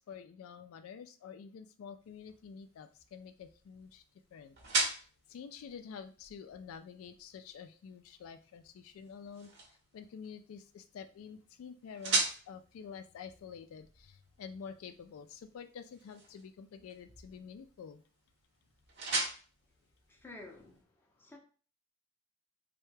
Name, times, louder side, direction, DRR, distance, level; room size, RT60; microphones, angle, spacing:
voice 1, 0.0-4.0 4.3-4.6 4.9-18.0, left 6 dB, 80° left, 10 dB, 0.3 m, -49 dB
sound 1, 2.0-20.8, right 3 dB, 55° right, 0.9 m, -41 dB
voice 2, 20.1-21.4, left 2 dB, 10° left, 1 dB, 0.5 m, -52 dB
3.2 x 2.2 x 3.2 m, 0.39 s
head